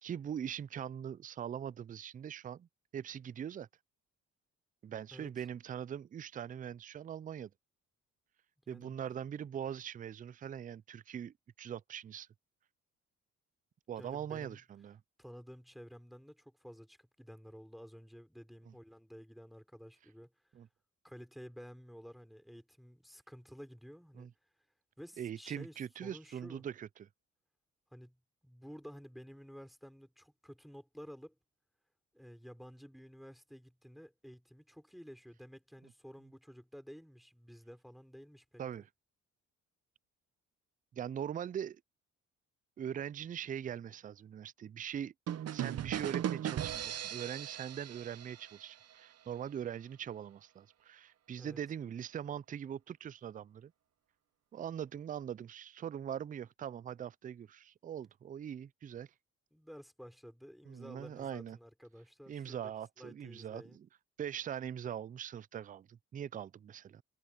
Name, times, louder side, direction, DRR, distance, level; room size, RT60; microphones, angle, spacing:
voice 1, 0.0-2.7 2.9-3.7 4.8-7.5 8.7-12.3 13.9-15.0 18.7-18.8 20.5-20.7 24.2-24.3 25.2-27.1 38.6-38.9 40.9-41.8 42.8-45.1 45.5-53.7 54.5-59.1 60.7-61.6 62.3-63.9 64.2-67.0, right 9 dB, 30° right, 0.4 m, -42 dB
voice 2, 5.1-5.5 8.6-8.9 14.0-14.6 15.2-20.3 21.0-24.3 25.0-26.6 27.9-28.2 28.4-31.4 32.1-38.8 51.4-51.6 59.5-62.7 63.0-63.8, equal, ahead, 4.7 m, -52 dB
sound 1, 45.3-49.0, right 10 dB, 55° right, 0.8 m, -38 dB
cardioid pair, 90°, 30 cm